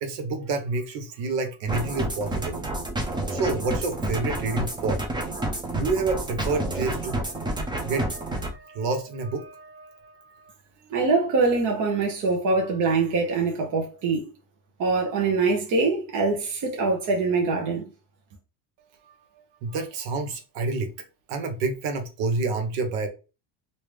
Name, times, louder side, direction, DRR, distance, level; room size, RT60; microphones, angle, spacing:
voice 1, 0.0-2.6 3.3-5.0 5.7-10.5 10.8-10.9 19.6-20.9 21.3-23.1, right 3 dB, 70° right, 1.0 m, -29 dB
sound 1, 1.7-8.5, right 1 dB, 10° right, 0.5 m, -29 dB
voice 2, 10.9-14.3 14.8-17.8, right 3 dB, 45° right, 1.0 m, -23 dB
3.2 x 2.8 x 3.2 m
cardioid pair, 145°, 44 cm